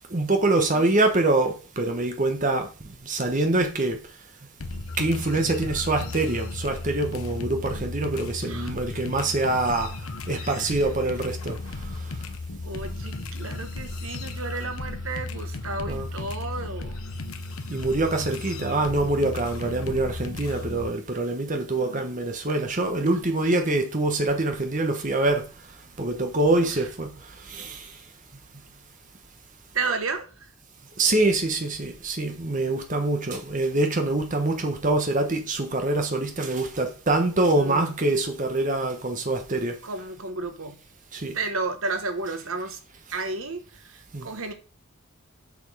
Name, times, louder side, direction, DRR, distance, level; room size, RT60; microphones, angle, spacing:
voice 1, 0.1-2.7 3.1-4.0 5.0-9.9 10.3-11.5 15.9-16.1 17.7-25.4 26.0-27.1 27.5-27.9 31.0-39.7 41.1-41.3 44.1-44.3, right 2 dB, 35° right, 5 dB, 1.1 m, -25 dB
sound 1, 4.6-20.9, left 2 dB, 80° left, 0.9 m, -35 dB
voice 2, 8.4-8.8 10.4-10.8 12.6-16.9 21.4-22.2 26.5-26.9 29.7-30.5 37.6-38.0 39.8-40.8 41.3-42.8 43.1-44.5, right 3 dB, 75° right, 8 dB, 1.2 m, -33 dB
7.1 x 6.1 x 4.9 m, 0.36 s
head